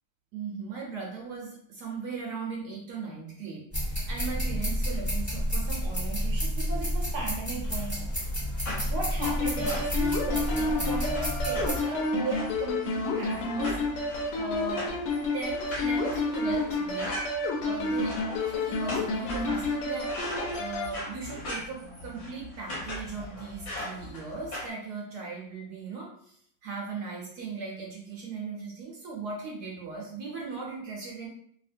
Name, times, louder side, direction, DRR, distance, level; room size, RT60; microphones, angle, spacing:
voice 1, 0.3-8.2 8.9-14.9 15.3-17.2 17.5-31.3, right 3 dB, 75° right, -2 dB, 1.1 m, -37 dB
sound 1, 3.7-11.8, equal, 10° left, 1.3 m, -30 dB
sound 2, 7.6-24.7, left 1 dB, 50° left, 1.1 m, -40 dB
sound 3, 9.2-20.9, left 2 dB, 80° left, 1.3 m, -30 dB
2.8 x 2.8 x 2.5 m, 0.67 s
omnidirectional pair, 1.9 m